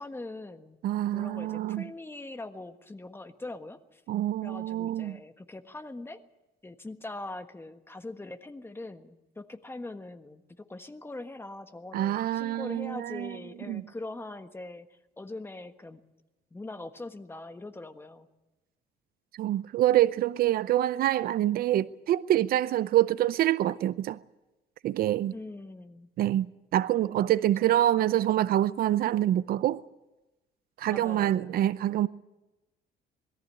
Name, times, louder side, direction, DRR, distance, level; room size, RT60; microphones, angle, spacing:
voice 1, 0.0-0.8 1.1-4.0 4.4-6.2 6.6-14.9 15.2-16.0 16.5-18.3 25.3-26.1 30.9-31.7, left 2 dB, 15° left, 1.4 m, -42 dB
voice 2, 0.8-1.9 4.1-5.2 11.9-13.4 13.7-13.8 19.4-24.2 24.8-25.3 26.2-29.8 30.8-32.1, right 13 dB, 65° right, 0.6 m, -26 dB
21.5 x 14.5 x 9.7 m
cardioid pair, 110°, 17 cm